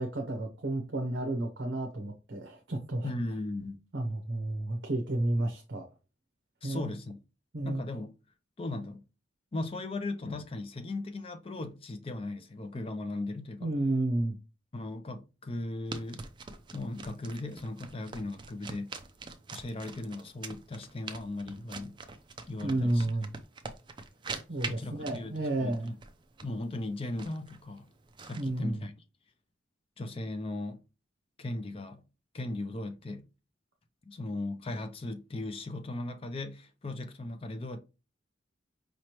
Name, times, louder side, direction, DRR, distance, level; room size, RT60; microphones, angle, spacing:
voice 1, 0.0-3.1 3.9-5.9 6.6-6.9 7.5-7.8 13.6-14.4 22.6-23.3 24.5-25.9 28.4-28.8, right 1 dB, 65° right, 0.8 m, -31 dB
voice 2, 3.0-3.8 6.6-7.2 7.6-8.1 8.6-9.0 9.5-13.7 14.7-16.3 16.7-19.0 19.5-22.0 22.5-23.1 24.6-26.0 26.4-27.9 28.2-28.9 30.0-30.8 31.4-32.0 32.3-33.3 34.0-37.8, left 2 dB, 30° left, 0.4 m, -37 dB
sound 1, 15.9-28.6, right 4 dB, 25° right, 0.4 m, -44 dB
5.0 x 3.2 x 2.9 m
head